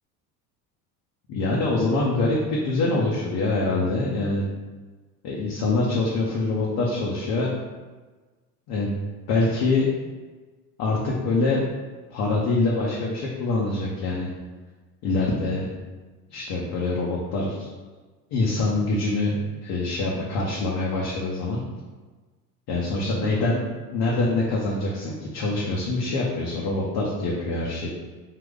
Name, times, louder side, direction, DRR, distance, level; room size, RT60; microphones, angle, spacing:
voice 1, 1.3-4.4 5.2-7.5 8.7-8.9 9.3-10.0 10.8-11.6 12.1-14.3 15.0-15.7 16.3-17.7 18.3-21.6 22.7-23.6 23.9-27.9, left 2 dB, 50° left, -4 dB, 0.8 m, -24 dB
3.7 x 2.4 x 3.6 m, 1.3 s
hypercardioid pair, 75°, 48 cm